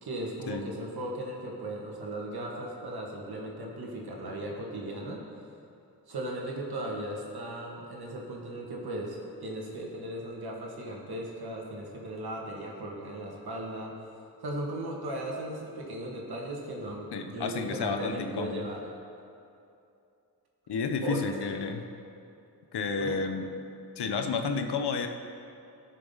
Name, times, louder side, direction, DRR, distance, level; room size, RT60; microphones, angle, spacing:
voice 1, 0.0-5.2 6.1-14.0 14.4-18.9 21.0-21.2 23.0-23.2, right 1 dB, 70° right, -1 dB, 1.9 m, -37 dB
voice 2, 17.1-18.6 20.7-21.8 22.7-23.5 24.0-25.1, left 5 dB, 90° left, 6 dB, 0.9 m, -31 dB
17.5 x 6.5 x 4.0 m, 2.6 s
wide cardioid pair, 145°, 39 cm